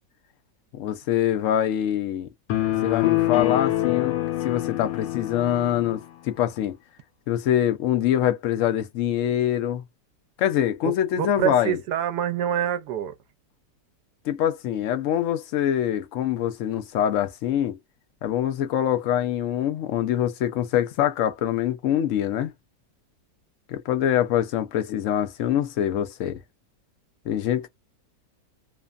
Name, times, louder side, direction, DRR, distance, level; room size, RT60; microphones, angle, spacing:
voice 1, 0.7-2.3 2.8-4.2 4.4-6.8 7.3-9.8 10.4-11.8 14.2-17.8 18.2-22.5 23.7-26.4 27.3-27.7, left 11 dB, 70° left, 0.7 m, -24 dB
sound 1, 2.5-6.0, left 15 dB, 90° left, 1.3 m, -25 dB
voice 2, 10.8-13.1, right 10 dB, 75° right, 1.1 m, -26 dB
3.2 x 2.0 x 2.3 m
omnidirectional pair, 1.9 m